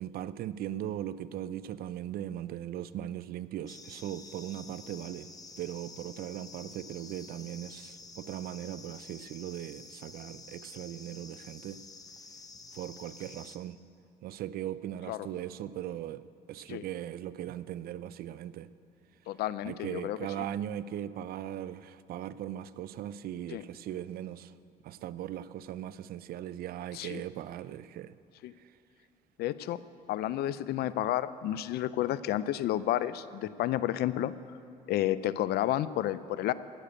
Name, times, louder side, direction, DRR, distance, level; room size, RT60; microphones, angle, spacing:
voice 1, 0.0-5.3 5.6-11.8 12.7-13.8 14.2-18.7 19.7-24.5 24.8-28.1 28.6-28.7, right 11 dB, 65° right, 16 dB, 0.5 m, -39 dB
sound 1, 3.7-13.6, left 3 dB, 20° left, 0.9 m, -50 dB
voice 2, 19.3-20.2 23.5-23.6 26.9-27.2 28.4-28.5 29.4-29.8 30.1-34.3 34.9-36.5, left 13 dB, 70° left, 16 dB, 0.5 m, -31 dB
15.0 x 6.7 x 8.9 m, 2.4 s
cardioid pair, 110°, 17 cm